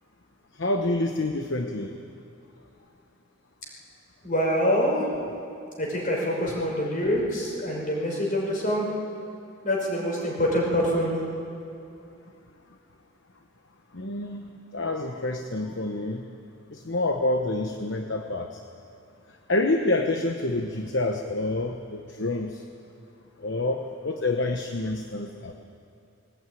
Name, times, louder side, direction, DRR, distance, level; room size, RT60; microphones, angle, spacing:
voice 1, 0.6-1.9 13.9-16.2 16.7-18.5 19.5-22.6 23.4-25.5, left 2 dB, 60° left, 4 dB, 1.0 m, -27 dB
voice 2, 4.2-5.1 5.8-8.9 9.6-11.2, equal, 40° left, -2 dB, 5.6 m, -25 dB
20.5 x 17.5 x 9.3 m, 2.5 s
head